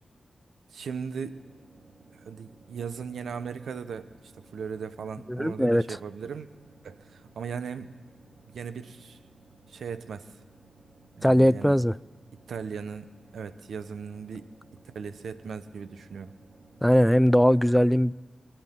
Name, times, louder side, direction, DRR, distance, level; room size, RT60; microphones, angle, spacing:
voice 1, 0.7-1.4 2.1-4.1 4.5-6.5 6.8-7.9 8.5-9.2 9.7-10.3 11.2-11.8 12.5-14.5 14.8-16.3, right 6 dB, 85° right, 11 dB, 0.9 m, -37 dB
sound 1, 1.3-17.3, right 3 dB, 65° right, 2.0 m, -57 dB
voice 2, 5.3-6.0 11.2-12.0 16.8-18.1, equal, ahead, 20 dB, 0.4 m, -20 dB
26.0 x 11.5 x 3.8 m, 1.4 s
cardioid pair, 45°, 0 cm